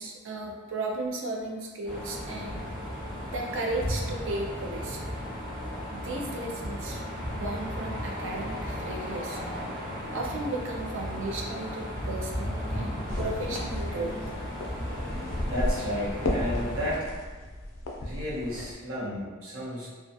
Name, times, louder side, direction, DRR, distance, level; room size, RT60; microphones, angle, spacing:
voice 1, 0.0-2.6 3.3-5.0 5.9-9.4 10.1-14.1, right 2 dB, 65° right, 0 dB, 0.4 m, -35 dB
sound 1, 1.8-17.0, equal, 25° right, 0.8 m, -35 dB
sound 2, 13.1-18.7, left 1 dB, 70° left, 0.4 m, -34 dB
voice 2, 15.5-17.1 18.0-19.9, left 1 dB, 85° right, -9 dB, 0.9 m, -32 dB
2.2 x 2.2 x 2.6 m, 1.3 s
head